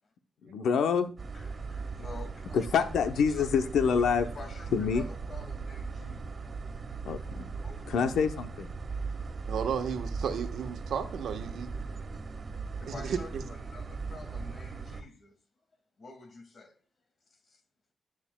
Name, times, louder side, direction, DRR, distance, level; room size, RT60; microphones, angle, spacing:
voice 1, 0.4-1.1 2.5-4.3 4.7-5.1 7.1-7.5 7.9-8.7, left 6 dB, 80° left, 0.7 m, -27 dB
sound 1, 1.2-15.0, right 4 dB, 50° right, 1.4 m, -38 dB
voice 2, 1.3-2.7 3.3-4.0 4.3-6.4 7.6-7.8 11.7-12.2 12.8-15.3 16.0-16.7, left 3 dB, 55° left, 2.1 m, -49 dB
voice 3, 9.5-11.7 12.9-13.4, right 7 dB, 80° right, 1.2 m, -33 dB
11.0 x 9.1 x 2.2 m
supercardioid pair, 45°, 0 cm